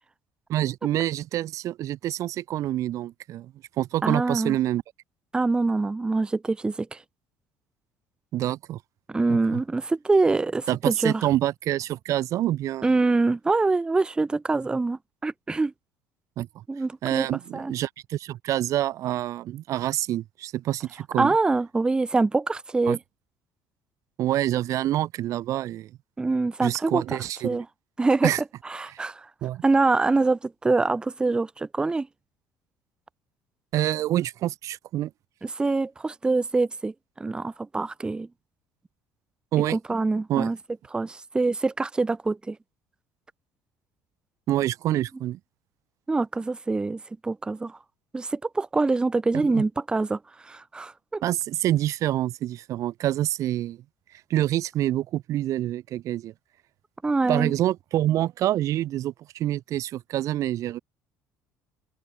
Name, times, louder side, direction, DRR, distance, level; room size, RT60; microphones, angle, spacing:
voice 1, 0.5-4.8 8.3-8.8 9.3-9.6 10.7-13.0 16.4-16.6 17.0-21.4 22.9-23.0 24.2-25.9 26.6-27.6 28.2-28.4 28.9-29.0 29.4-29.6 33.7-35.1 39.5-39.8 40.3-40.5 44.5-45.4 49.3-49.6 51.2-53.8 54.3-56.3 57.3-60.8, right 13 dB, 55° right, 0.8 m, -27 dB
voice 2, 4.0-4.6 5.3-7.0 9.1-11.2 12.8-15.7 16.7-17.7 21.2-23.0 26.2-27.0 27.4-27.6 28.0-28.3 28.6-29.3 29.6-32.1 35.4-38.3 39.7-40.6 40.9-42.6 46.1-47.8 48.1-51.2 57.0-57.5, right 3 dB, 15° right, 0.7 m, -25 dB
open air
cardioid pair, 120°, 6 cm